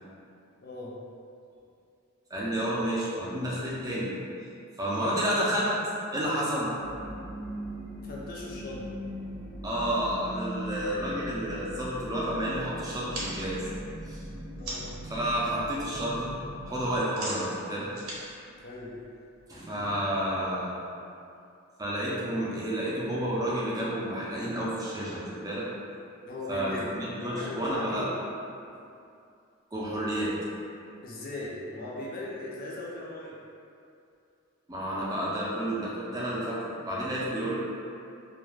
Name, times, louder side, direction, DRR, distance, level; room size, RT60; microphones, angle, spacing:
voice 1, 0.6-0.9 8.0-8.9 14.6-14.9 18.6-18.9 26.3-28.1 31.0-33.4, left 2 dB, 45° left, -5 dB, 0.4 m, -38 dB
voice 2, 2.3-4.1 4.8-5.7 6.1-6.7 9.6-13.6 14.0-14.2 15.0-16.3 16.6-17.9 19.5-20.7 21.8-25.7 26.5-28.1 29.7-30.3 34.7-37.6, right 1 dB, 15° right, -7 dB, 0.4 m, -30 dB
sound 1, 6.8-17.0, equal, 80° left, 0.8 m, -40 dB
sound 2, 13.1-15.0 15.4-15.9 16.1-19.4, right 1 dB, 75° right, 0.6 m, -40 dB
2.3 x 2.2 x 3.1 m, 2.5 s
head